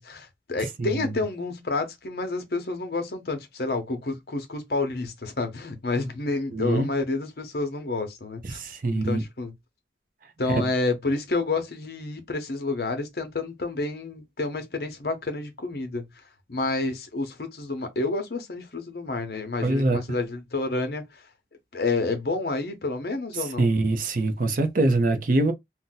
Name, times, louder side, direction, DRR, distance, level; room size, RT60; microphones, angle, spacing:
voice 1, 0.0-8.6 8.9-9.5 10.4-16.0 16.5-21.2 21.7-23.7, left 3 dB, 60° left, 0.7 m, -29 dB
voice 2, 0.8-1.2 6.5-6.9 8.4-9.2 10.5-10.7 19.6-20.0 23.4-25.5, right 2 dB, 50° right, 0.5 m, -24 dB
2.6 x 2.1 x 3.8 m
head